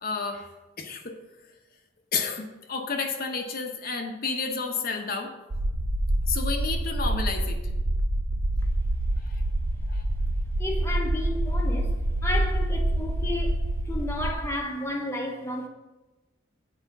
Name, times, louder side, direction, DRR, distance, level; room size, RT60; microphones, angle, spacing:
voice 1, 0.0-0.5 0.8-1.2 2.1-5.3 6.3-7.6 9.2-9.4 9.9-10.0, left 4 dB, 50° left, 0.9 m, -31 dB
sound 1, 5.5-14.4, right 1 dB, 75° right, 0.7 m, -26 dB
voice 2, 10.6-11.9 12.2-15.7, left 1 dB, 15° left, 0.8 m, -32 dB
9.1 x 5.0 x 5.9 m
head